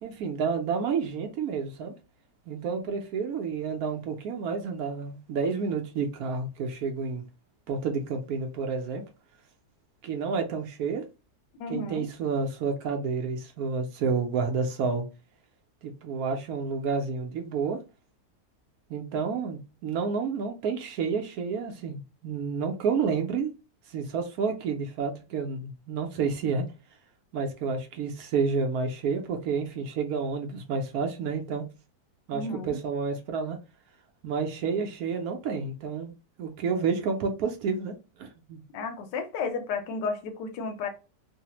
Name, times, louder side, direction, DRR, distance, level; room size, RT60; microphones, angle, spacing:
voice 1, 0.0-1.9 2.5-7.2 7.7-9.0 10.0-11.0 11.7-15.0 15.8-17.8 18.9-23.5 23.9-26.7 27.3-31.6 32.3-33.6 34.2-36.1 36.4-38.6, right 5 dB, 70° right, 0.9 m, -30 dB
voice 2, 11.6-12.0 32.3-32.8 38.7-40.9, left 4 dB, 85° left, 1.3 m, -32 dB
3.2 x 2.0 x 2.8 m
omnidirectional pair, 1.9 m